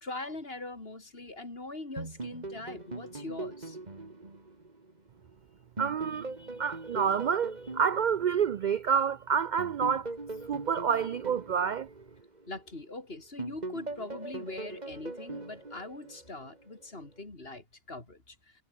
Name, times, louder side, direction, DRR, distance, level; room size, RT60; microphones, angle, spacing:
voice 1, 0.0-3.8 12.5-18.6, left 2 dB, 45° left, 3.7 m, -42 dB
sound 1, 2.0-5.3 5.8-9.0 9.6-12.9 13.4-16.6, right 2 dB, 30° right, 2.5 m, -41 dB
voice 2, 5.8-10.1 10.5-11.9, right 7 dB, 70° right, 0.4 m, -28 dB
omnidirectional pair, 1.4 m